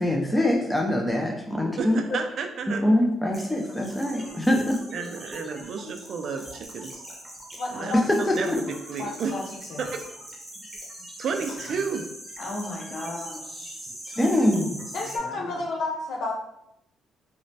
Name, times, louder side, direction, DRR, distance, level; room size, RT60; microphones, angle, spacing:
voice 1, 0.0-2.0 2.7-4.8 7.9-8.6 14.2-14.7, left 1 dB, 10° left, 1 dB, 0.4 m, -23 dB
voice 2, 1.8-2.8 4.9-7.0 7.7-9.4 9.8-10.0 11.2-12.1, right 5 dB, 60° right, 5 dB, 0.3 m, -32 dB
sound 1, 3.3-15.2, right 1 dB, 15° right, 0.8 m, -42 dB
voice 3, 7.6-8.5 9.0-9.4 9.7-9.8 14.9-16.3, left 3 dB, 70° left, 0 dB, 0.6 m, -31 dB
voice 4, 12.4-13.8 14.2-14.4 15.2-15.6, left 1 dB, 45° left, -1 dB, 0.8 m, -36 dB
3.0 x 2.1 x 2.7 m, 0.79 s
cardioid pair, 90°, 0 cm